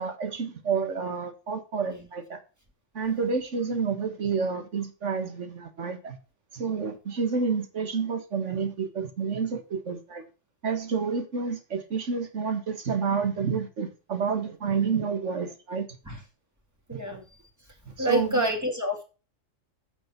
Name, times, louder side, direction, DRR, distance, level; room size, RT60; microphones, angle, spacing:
voice 1, 0.0-2.4 3.0-6.2 6.5-10.2 10.6-15.9 16.9-17.0 18.0-18.4, right 5 dB, 65° right, 1.9 m, -29 dB
voice 2, 16.9-17.2 18.0-19.0, right 1 dB, 15° right, 2.5 m, -28 dB
8.9 x 6.7 x 6.0 m
omnidirectional pair, 1.4 m